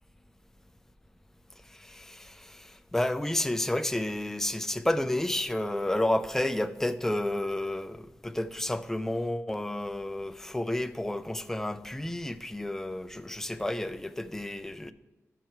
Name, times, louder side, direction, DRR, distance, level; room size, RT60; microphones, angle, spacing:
voice 1, 1.7-14.9, left 1 dB, 10° left, 0.4 m, -31 dB
13.5 x 4.8 x 4.5 m
wide cardioid pair, 115°, 6 cm